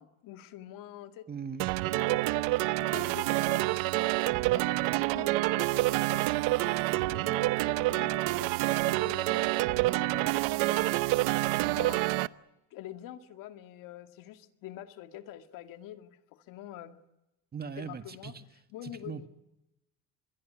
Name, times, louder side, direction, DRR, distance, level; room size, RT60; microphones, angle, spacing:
voice 1, 0.0-1.3 1.8-6.3 6.6-12.2 12.7-17.0 17.8-18.3 18.7-19.3, left 12 dB, 70° left, 2.2 m, -46 dB
voice 2, 1.3-1.7 17.5-18.4 19.0-19.3, right 6 dB, 25° right, 1.8 m, -39 dB
sound 1, 1.6-12.3, right 20 dB, 80° right, 0.9 m, -27 dB
26.5 x 22.5 x 8.5 m
supercardioid pair, 105°, 34 cm